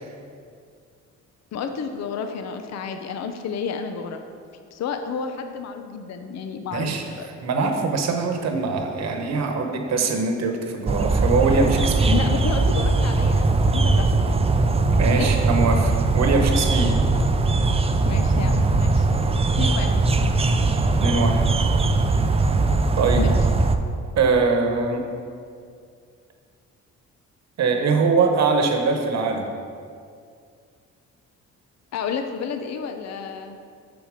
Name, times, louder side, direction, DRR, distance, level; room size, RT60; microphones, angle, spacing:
voice 1, 1.5-4.2 4.7-7.3 12.1-14.1 15.2-15.3 18.0-19.1 19.6-19.9 23.2-23.3 31.9-33.6, left 6 dB, 60° left, 6 dB, 0.7 m, -30 dB
voice 2, 6.7-7.1 7.4-12.2 14.9-17.0 21.0-21.5 23.0-23.3 24.2-25.0 27.6-29.5, right 4 dB, 60° right, 4 dB, 1.1 m, -22 dB
sound 1, 10.9-23.8, right 3 dB, 20° right, 0.4 m, -20 dB
6.9 x 5.9 x 5.0 m, 2.3 s
cardioid pair, 90°, 30 cm